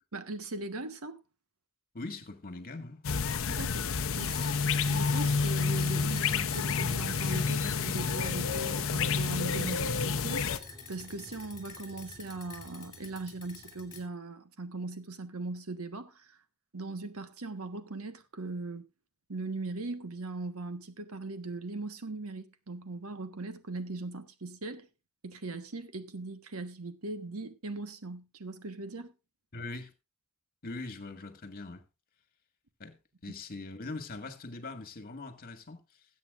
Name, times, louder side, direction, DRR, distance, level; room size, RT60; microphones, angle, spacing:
voice 1, 0.1-1.2 3.5-4.6 4.8-16.3 16.7-18.8 19.3-24.9 25.2-29.1, right 3 dB, 75° right, 1.3 m, -39 dB
voice 2, 1.9-3.0 29.5-29.9 30.6-31.8 32.8-33.0 33.2-36.1, left 3 dB, 45° left, 1.7 m, -41 dB
sound 1, 3.0-10.6, left 5 dB, 65° left, 0.7 m, -29 dB
sound 2, 4.1-14.0, left 3 dB, 20° left, 3.3 m, -45 dB
20.5 x 8.4 x 2.5 m
head